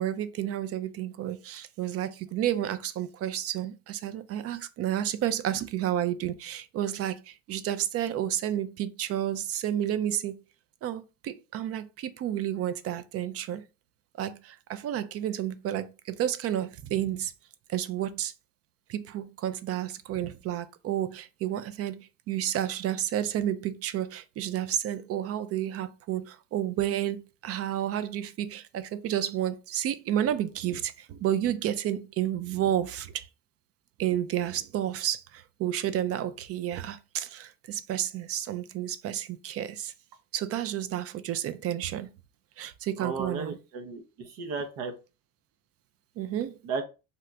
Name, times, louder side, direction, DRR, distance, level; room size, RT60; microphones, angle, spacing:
voice 1, 0.0-10.4 10.8-13.6 14.2-17.3 17.7-18.3 18.9-33.3 34.0-39.9 40.3-42.1 42.6-43.6 46.2-46.6, right 11 dB, 45° right, 0.4 m, -31 dB
voice 2, 43.0-44.9 46.6-46.8, right 4 dB, 75° right, 0.8 m, -34 dB
2.9 x 2.4 x 3.2 m
cardioid pair, 105°, 33 cm